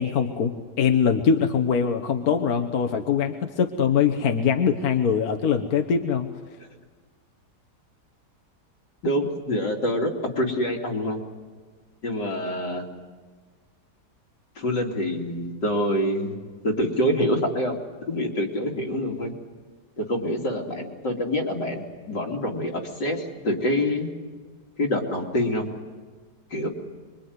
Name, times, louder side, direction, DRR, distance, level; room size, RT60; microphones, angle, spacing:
voice 1, 0.0-6.3, left 7 dB, 60° left, 5 dB, 1.6 m, -22 dB
voice 2, 9.0-11.2 12.0-12.8 14.6-16.4 16.6-19.3 20.0-24.1 24.8-25.7 26.5-26.7, left 1 dB, 80° left, 1 dB, 3.5 m, -26 dB
25.5 x 23.0 x 9.5 m, 1.5 s
omnidirectional pair, 1.8 m